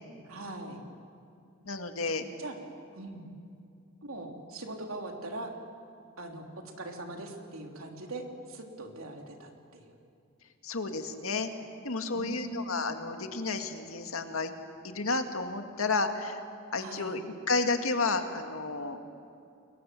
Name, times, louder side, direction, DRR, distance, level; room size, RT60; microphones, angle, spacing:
voice 1, 0.2-0.8 2.0-2.6 2.9-3.3 4.0-5.5 6.2-9.9 12.1-12.8 16.8-17.2, right 2 dB, 80° right, 3 dB, 3.4 m, -41 dB
voice 2, 1.7-2.2 10.6-11.5 11.8-14.5 14.8-16.4 16.7-19.0, left 3 dB, 80° left, 6 dB, 2.1 m, -31 dB
29.5 x 22.0 x 7.7 m, 2.5 s
head